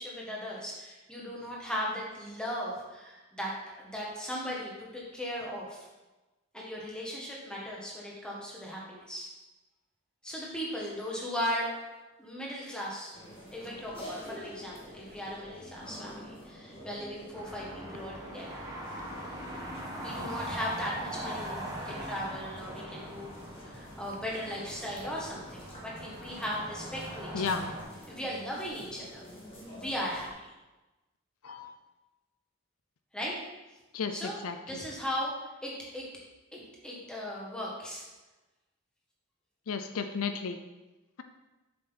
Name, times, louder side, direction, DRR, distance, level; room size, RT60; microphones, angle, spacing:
voice 1, 0.0-5.9 6.5-9.3 10.2-11.8 12.2-13.2 13.5-18.6 20.0-27.5 28.1-29.2 29.8-30.5 33.1-33.3 34.1-34.4 34.6-35.3 35.6-36.1 36.5-38.0, equal, 5° left, -5 dB, 1.7 m, -37 dB
sound 1, 13.1-30.3, equal, 25° left, 1.8 m, -48 dB
sound 2, 17.3-27.8, right 1 dB, 15° right, 1.3 m, -41 dB
voice 2, 27.3-27.7 31.4-31.7 33.9-34.6 39.7-40.6, left 5 dB, 75° left, 8 dB, 0.5 m, -33 dB
7.2 x 6.7 x 4.1 m, 1.1 s
head